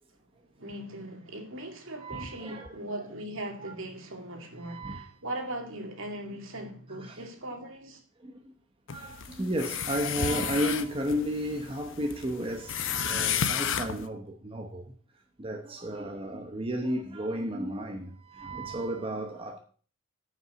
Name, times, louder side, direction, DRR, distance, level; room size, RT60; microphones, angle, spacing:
voice 1, 0.6-8.0, right 1 dB, 60° right, 2.4 m, -39 dB
voice 2, 2.0-2.7 3.6-3.7 4.6-5.1 7.0-7.3 8.2-8.5 8.9-14.9 15.4-19.6, equal, 25° right, 0.9 m, -33 dB
sound 1, 8.9-14.1, left 8 dB, 55° left, 0.9 m, -32 dB
10.0 x 5.7 x 8.0 m
head